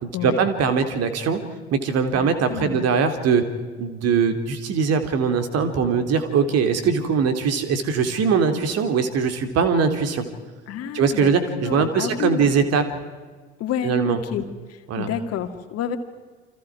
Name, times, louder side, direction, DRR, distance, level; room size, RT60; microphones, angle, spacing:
voice 1, 0.0-1.4 1.7-3.4 3.8-10.2 10.9-12.8 13.8-14.2 14.9-15.1, right 6 dB, 45° right, 8 dB, 2.9 m, -21 dB
voice 2, 2.1-2.9 10.7-11.3 11.6-12.5 13.6-14.4 15.0-16.0, left 9 dB, 45° left, 7 dB, 2.3 m, -29 dB
29.0 x 25.5 x 4.8 m, 1.4 s
figure-of-eight pair, 65°, 35 cm